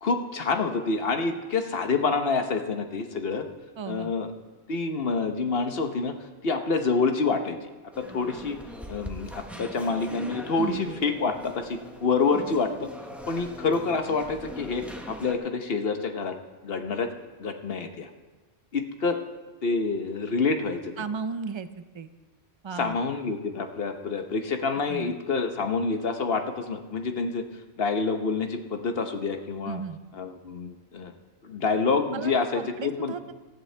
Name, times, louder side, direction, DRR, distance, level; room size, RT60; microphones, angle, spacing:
voice 1, 0.0-3.5 3.9-4.3 4.7-7.6 8.0-8.6 8.9-12.9 13.3-16.4 16.6-17.1 17.4-18.1 18.7-19.2 19.6-20.9 22.8-27.4 27.8-29.8 30.1-31.1 31.4-33.1, left 4 dB, 60° left, 6 dB, 1.2 m, -27 dB
voice 2, 3.8-4.1 10.6-11.0 21.0-21.7 21.9-22.1 22.6-23.0 24.9-25.1 29.7-30.0 32.1-33.3, right 5 dB, 40° right, 11 dB, 0.4 m, -35 dB
sound 1, 7.9-15.3, equal, ahead, 1.1 m, -41 dB
18.5 x 14.5 x 3.3 m, 1.3 s
omnidirectional pair, 1.2 m